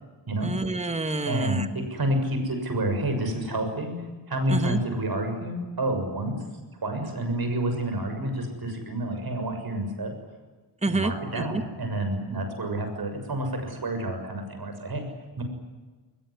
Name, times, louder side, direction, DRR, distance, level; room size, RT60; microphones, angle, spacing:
voice 1, 0.4-1.6 4.5-4.8 10.8-11.6, right 2 dB, 15° right, 9 dB, 1.6 m, -28 dB
voice 2, 1.3-3.9 4.3-6.4 6.8-10.2 10.9-15.0 15.4-15.5, right 1 dB, 55° right, 6 dB, 6.9 m, -29 dB
23.0 x 21.0 x 10.0 m, 1.3 s
wide cardioid pair, 115°, 43 cm